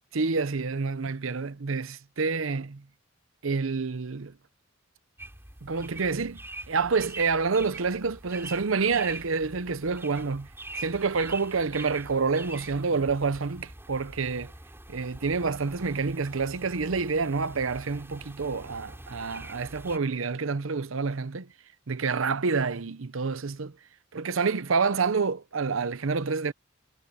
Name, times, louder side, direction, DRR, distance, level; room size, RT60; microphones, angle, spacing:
voice 1, 0.1-2.8 3.4-4.3 5.6-6.4 6.7-14.5 14.9-21.5 21.9-23.7 24.1-26.5, right 4 dB, 70° right, 0.8 m, -28 dB
sound 1, 5.2-20.0, right 2 dB, 10° right, 7.2 m, -45 dB
head